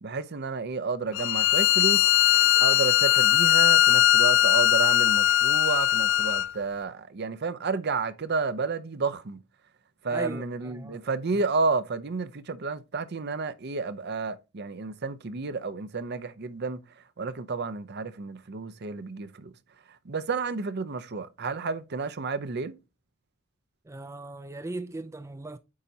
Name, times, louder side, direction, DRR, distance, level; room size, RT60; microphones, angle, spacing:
voice 1, 0.0-2.0 2.6-9.4 10.0-16.8 17.2-19.5 20.0-22.8, right 4 dB, 55° right, 0.6 m, -31 dB
Bowed string instrument, 1.1-6.5, left 12 dB, 60° left, 0.3 m, -20 dB
voice 2, 10.1-11.0 23.8-25.6, right 2 dB, 15° right, 0.4 m, -38 dB
8.6 x 5.2 x 2.8 m
head